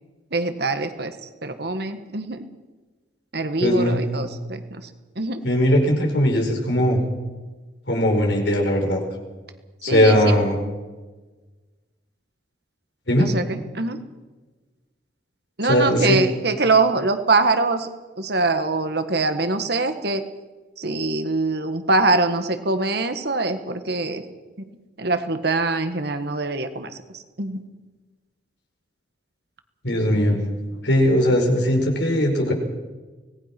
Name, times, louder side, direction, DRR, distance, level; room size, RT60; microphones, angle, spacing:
voice 1, 0.3-1.1 1.4-2.4 3.3-4.8 5.2-5.4 9.8-10.4 13.2-14.0 15.6-17.9 18.2-20.3 20.8-24.2 25.0-27.6, right 3 dB, 60° right, 8 dB, 1.6 m, -23 dB
voice 2, 3.6-4.1 5.4-7.0 7.9-9.0 9.8-10.6 13.1-13.3 15.7-16.2 29.8-30.4 30.8-32.5, equal, 65° left, 2 dB, 4.9 m, -19 dB
25.0 x 19.0 x 6.1 m, 1.3 s
head